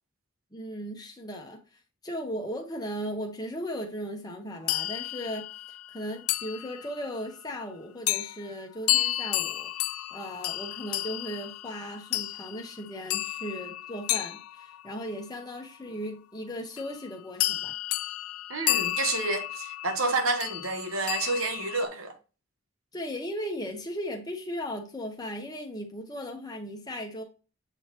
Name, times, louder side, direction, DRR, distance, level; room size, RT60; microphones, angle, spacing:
voice 1, 0.5-1.6 2.0-9.7 10.1-17.7 22.9-27.2, equal, 20° left, 1.2 m, -37 dB
sound 1, 4.7-7.1 8.1-8.4 8.9-15.2 16.8-17.0 17.4-21.8, left 15 dB, 80° left, 0.4 m, -32 dB
voice 2, 18.5-22.1, right 3 dB, 70° right, 1.3 m, -29 dB
8.0 x 4.0 x 3.0 m
head